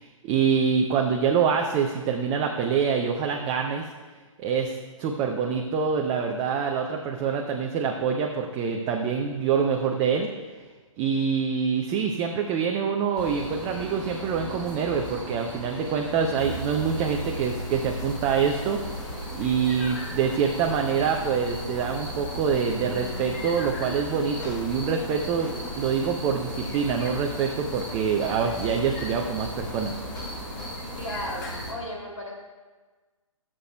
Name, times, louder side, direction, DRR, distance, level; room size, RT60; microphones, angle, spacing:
voice 1, 0.0-3.9 4.4-10.3 11.0-30.0, right 6 dB, 15° right, 2 dB, 0.5 m, -26 dB
sound 1, 13.1-31.8, right 1 dB, 5° left, 2.7 m, -38 dB
sound 2, 16.4-31.7, left 1 dB, 35° left, 1.1 m, -38 dB
voice 2, 31.0-32.3, left 1 dB, 70° left, -1 dB, 2.5 m, -35 dB
17.5 x 7.4 x 2.2 m, 1.3 s
figure-of-eight pair, 130°, 17 cm